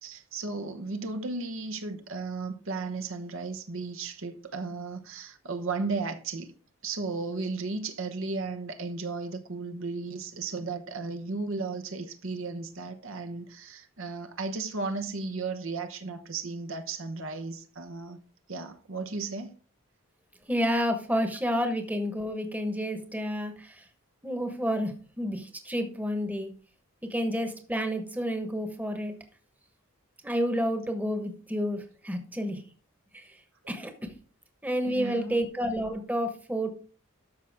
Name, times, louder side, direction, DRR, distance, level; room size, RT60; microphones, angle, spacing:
voice 1, 0.0-6.5 6.8-18.2 18.5-19.5 34.8-35.4, right 3 dB, 65° right, 1.0 m, -35 dB
voice 2, 20.5-23.8 24.2-26.5 27.1-29.1 30.2-32.6 33.1-33.4 33.7-34.1 34.6-36.7, equal, 10° right, 1.2 m, -30 dB
12.5 x 5.8 x 3.5 m
head